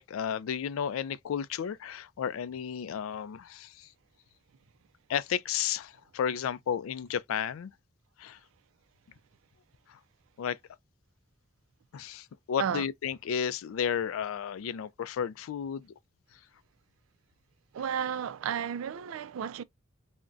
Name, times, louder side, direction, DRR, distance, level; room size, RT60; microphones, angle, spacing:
voice 1, 0.0-3.9 5.1-7.7 8.2-8.4 9.9-10.0 10.4-10.6 11.9-15.9, left 8 dB, 90° left, 0.3 m, -33 dB
voice 2, 17.7-19.6, right 8 dB, 85° right, 0.3 m, -32 dB
3.8 x 2.1 x 2.3 m
head